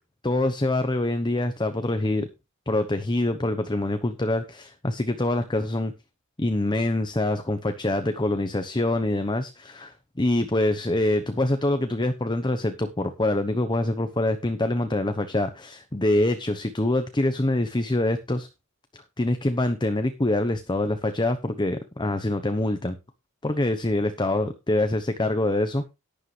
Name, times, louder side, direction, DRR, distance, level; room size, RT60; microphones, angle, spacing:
voice 1, 0.2-2.3 2.7-5.9 6.4-18.5 18.9-23.0 23.4-25.9, left 1 dB, 20° left, 9 dB, 1.0 m, -25 dB
11.5 x 10.5 x 3.3 m, 0.26 s
head